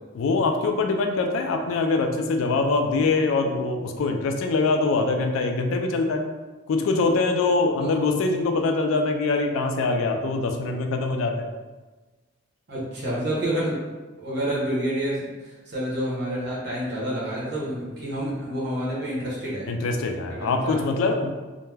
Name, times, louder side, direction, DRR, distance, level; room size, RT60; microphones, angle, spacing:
voice 1, 0.1-6.2 6.7-11.5 19.7-21.3, left 3 dB, 80° left, 4 dB, 0.3 m, -23 dB
voice 2, 12.7-13.8 14.2-15.2 15.7-19.7 20.3-20.8, right 1 dB, 50° right, -7 dB, 0.7 m, -28 dB
2.2 x 2.1 x 3.2 m, 1.2 s
head